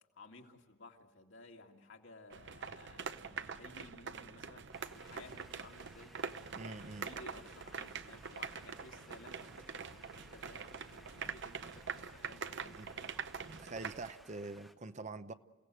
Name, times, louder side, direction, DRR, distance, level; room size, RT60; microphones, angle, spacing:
voice 1, 0.1-6.2 6.6-13.2, left 2 dB, 65° left, 2.2 m, -57 dB
sound 1, 2.3-14.1, right 6 dB, 60° right, 0.9 m, -44 dB
sound 2, 4.7-14.8, equal, ahead, 1.1 m, -61 dB
voice 2, 6.5-7.1 11.2-11.4 11.7-11.8 12.7-12.9 13.4-15.3, right 3 dB, 35° right, 0.7 m, -46 dB
29.0 x 17.0 x 7.7 m
head